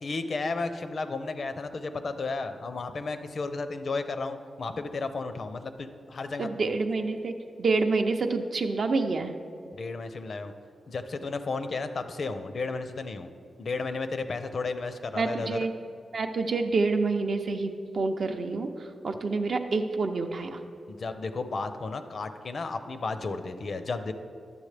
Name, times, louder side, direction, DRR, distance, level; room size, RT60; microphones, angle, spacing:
voice 1, 0.0-6.5 9.7-10.5 10.9-13.3 13.6-15.6 20.9-24.1, left 3 dB, 55° left, 9 dB, 0.5 m, -33 dB
voice 2, 6.4-7.3 7.6-9.4 15.2-15.7 16.1-18.7 19.0-20.6, right 3 dB, 60° right, 6 dB, 0.5 m, -27 dB
10.5 x 6.9 x 3.3 m, 2.4 s
cardioid pair, 90°, 0 cm